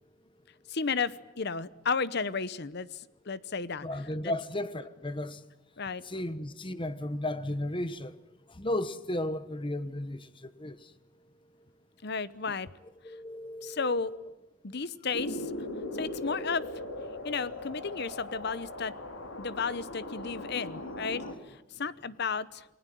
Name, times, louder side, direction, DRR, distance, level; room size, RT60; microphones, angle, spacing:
voice 1, 0.7-3.9 4.2-4.3 5.8-6.0 12.0-12.7 13.6-14.1 14.6-15.5 16.0-16.7 17.2-18.9 19.4-21.2 21.8-22.6, left 5 dB, 55° left, 0.9 m, -33 dB
voice 2, 3.8-5.4 6.1-8.1 8.6-10.8 13.0-14.3 16.0-16.1, left 1 dB, 25° left, 1.1 m, -34 dB
sound 1, 15.1-21.3, left 1 dB, 90° left, 3.7 m, -39 dB
28.5 x 20.0 x 9.2 m
head